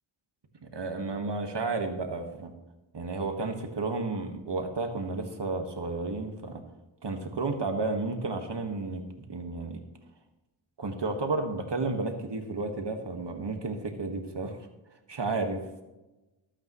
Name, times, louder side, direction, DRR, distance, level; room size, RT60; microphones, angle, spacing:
voice 1, 0.6-2.5 2.9-6.6 7.0-9.0 9.3-9.8 10.8-14.6 15.1-15.6, right 3 dB, 60° right, 5 dB, 1.7 m, -32 dB
18.5 x 8.8 x 3.1 m, 1.0 s
cardioid pair, 45°, 48 cm